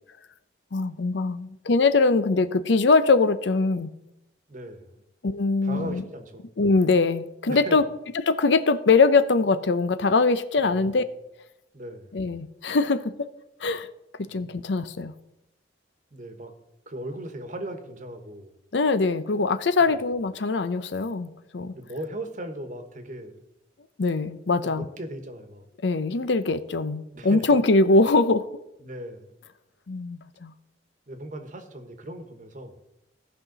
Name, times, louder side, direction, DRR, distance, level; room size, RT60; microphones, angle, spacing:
voice 1, 0.7-3.9 5.2-6.0 6.6-7.8 8.3-11.0 12.1-13.3 13.6-13.9 14.3-15.1 18.7-21.7 24.0-24.9 25.8-28.5 29.9-30.5, left 3 dB, 70° left, 12 dB, 0.6 m, -22 dB
voice 2, 4.5-5.0 5.6-6.4 7.5-7.9 10.6-11.1 11.7-12.1 14.2-14.5 16.1-16.5 16.9-18.6 19.8-19.9 21.7-23.4 24.6-25.7 27.1-27.6 28.8-29.3 31.1-32.8, right 1 dB, 45° right, 6 dB, 1.3 m, -38 dB
17.0 x 5.7 x 4.0 m, 0.88 s
head